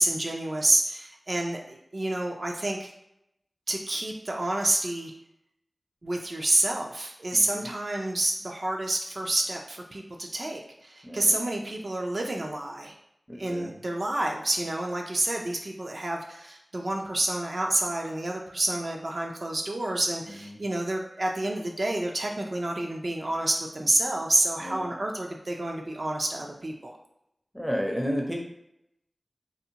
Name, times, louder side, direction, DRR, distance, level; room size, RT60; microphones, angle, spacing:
voice 1, 0.0-2.9 3.7-5.1 6.0-12.9 13.4-27.0, right 1 dB, 60° right, 0 dB, 0.4 m, -28 dB
voice 2, 7.3-7.7 11.0-11.4 13.3-13.7 20.4-20.6 24.6-25.0 27.5-28.4, equal, 5° left, 0 dB, 0.5 m, -32 dB
2.6 x 2.1 x 2.7 m, 0.80 s
wide cardioid pair, 60°, 0 cm